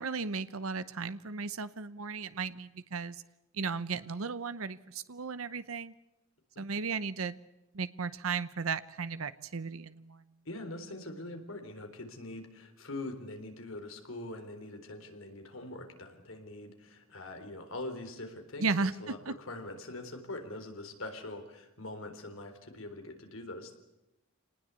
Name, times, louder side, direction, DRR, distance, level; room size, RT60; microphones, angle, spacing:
voice 1, 0.0-3.2 3.5-5.9 6.6-7.3 7.7-10.2 18.6-19.3, right 4 dB, 85° right, 13 dB, 0.8 m, -35 dB
voice 2, 10.5-23.8, left 2 dB, 75° left, 6 dB, 3.9 m, -43 dB
26.5 x 19.5 x 8.3 m, 0.97 s
head